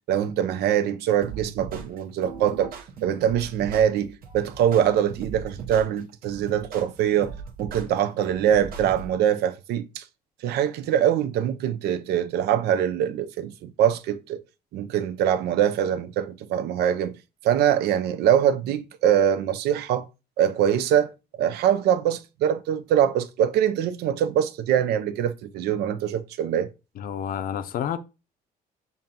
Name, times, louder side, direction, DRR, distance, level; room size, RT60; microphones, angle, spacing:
voice 1, 0.1-2.7 3.0-7.3 7.6-10.0 10.4-14.4 14.7-17.1 17.4-20.0 20.4-21.1 21.4-26.7, right 9 dB, 75° right, 0.5 m, -23 dB
sound 1, 1.2-9.2, right 6 dB, 60° right, 1.0 m, -38 dB
voice 2, 27.0-28.0, left 9 dB, 60° left, 0.6 m, -29 dB
7.0 x 2.6 x 2.8 m
cardioid pair, 110°, 17 cm